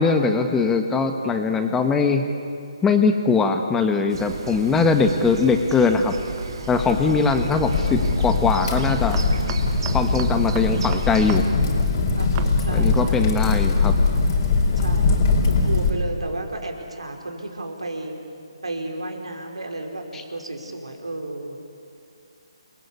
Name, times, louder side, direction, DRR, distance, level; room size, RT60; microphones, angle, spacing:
voice 1, 0.0-2.2 2.8-6.1 6.7-9.2 9.9-11.5 12.7-13.9 20.1-20.2, left 4 dB, 10° left, 6 dB, 1.4 m, -21 dB
sound 1, 4.1-11.4, right 5 dB, 55° right, 3.1 m, -34 dB
sound 2, 6.4-6.7 8.7-11.4 11.7-11.8 12.4-12.5, right 11 dB, 25° right, 1.6 m, -36 dB
Crackle, 6.7-15.9, left 4 dB, 40° left, 4.2 m, -21 dB
voice 2, 6.8-7.3 12.1-13.5 14.7-18.2 18.6-21.6, right 2 dB, 75° right, 3 dB, 5.1 m, -33 dB
29.5 x 21.5 x 8.6 m, 2.5 s
figure-of-eight pair, 145°, 3 cm